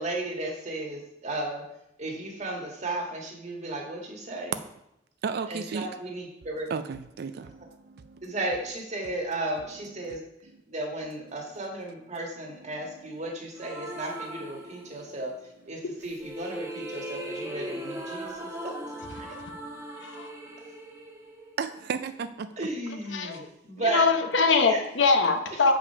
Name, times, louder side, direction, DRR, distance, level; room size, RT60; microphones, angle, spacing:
voice 1, 0.0-1.6 2.0-4.6 5.5-6.7 8.2-10.2 10.7-15.3 15.7-18.7 19.2-19.4 22.6-24.1 24.6-24.8, right 2 dB, 40° right, 1 dB, 1.6 m, -34 dB
voice 2, 5.2-5.9 6.7-7.3 21.6-22.5, right 5 dB, 60° right, 11 dB, 0.4 m, -32 dB
sound 1, 13.6-15.3 16.0-22.1, right 1 dB, 15° right, 1.3 m, -39 dB
voice 3, 23.9-25.8, left 4 dB, 75° left, 7 dB, 0.8 m, -22 dB
7.0 x 5.2 x 5.5 m, 0.82 s
head